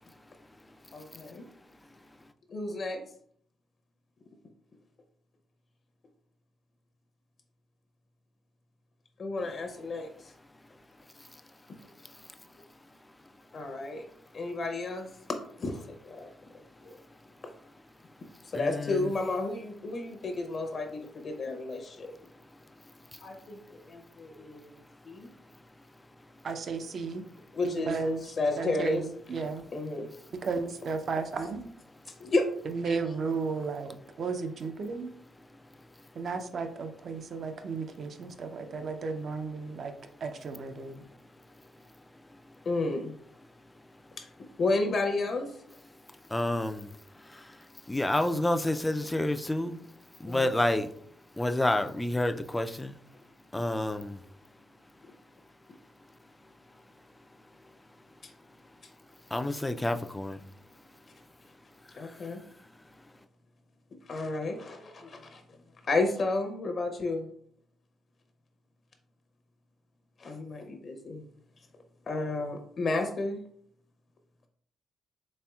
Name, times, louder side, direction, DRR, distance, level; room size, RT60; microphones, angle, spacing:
voice 1, 0.9-1.4 2.5-3.0 9.2-10.1 13.5-14.0 14.3-15.1 15.6-16.3 16.8-17.0 18.4-22.1 23.2-24.8 25.0-25.3 27.5-29.0 29.4-29.5 29.7-30.1 32.2-32.4 32.9-33.0 33.3-33.7 34.2-34.3 34.8-35.0 36.2-36.4 42.6-43.1 44.2-44.3 44.6-45.6 50.3-50.5 62.0-62.4 64.1-65.4 65.8-67.3 70.2-71.2 72.1-73.4, left 3 dB, 50° left, 0.6 m, -32 dB
voice 2, 18.5-19.1 23.1-23.2 46.3-49.9 50.2-50.9 51.4-53.0 53.5-54.2 59.3-60.4 61.9-62.1, left 1 dB, 10° left, 0.3 m, -29 dB
voice 3, 26.4-27.2 27.6-28.2 28.6-29.6 30.4-31.6 32.6-35.1 36.1-39.9 40.2-41.0, right 5 dB, 50° right, 0.5 m, -34 dB
4.2 x 3.3 x 2.3 m
cardioid pair, 90°, 0 cm